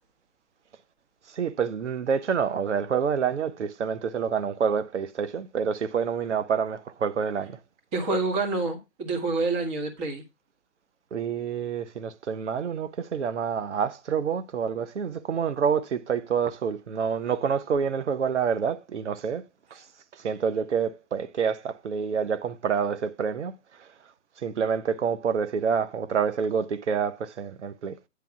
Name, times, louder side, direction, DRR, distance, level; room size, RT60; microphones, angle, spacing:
voice 1, 1.3-7.6 11.1-19.4 19.7-19.8 20.1-23.5 23.8-23.9 24.4-28.0, right 6 dB, 65° right, 1.0 m, -27 dB
voice 2, 7.9-10.2, right 3 dB, 25° right, 1.7 m, -27 dB
9.5 x 3.4 x 4.7 m
hypercardioid pair, 150°, 37 cm